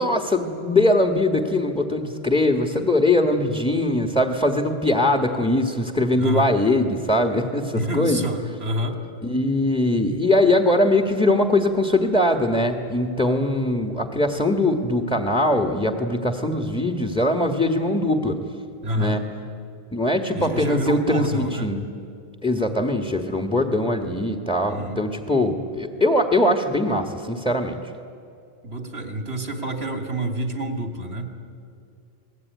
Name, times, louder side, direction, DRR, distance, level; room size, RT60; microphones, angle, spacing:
voice 1, 0.0-8.2 9.2-18.4 18.9-19.2 19.9-21.9 22.4-27.8, left 1 dB, 5° left, 4 dB, 1.6 m, -21 dB
voice 2, 6.2-6.6 7.7-9.0 18.8-19.2 20.3-21.7 24.7-25.0 28.6-31.3, right 1 dB, 90° right, 5 dB, 3.0 m, -28 dB
29.0 x 21.0 x 9.5 m, 2.5 s
omnidirectional pair, 1.0 m